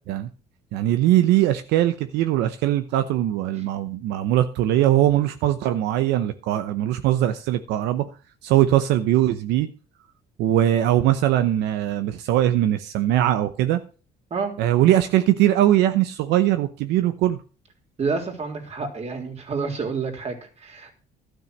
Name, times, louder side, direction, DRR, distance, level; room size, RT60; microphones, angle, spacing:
voice 1, 0.7-8.0 8.4-9.7 10.4-13.8 14.6-17.4, right 13 dB, 90° right, 9 dB, 0.9 m, -21 dB
voice 2, 18.0-21.1, right 4 dB, 40° right, 3 dB, 3.3 m, -29 dB
12.5 x 6.5 x 6.5 m, 0.37 s
cardioid pair, 110°, 17 cm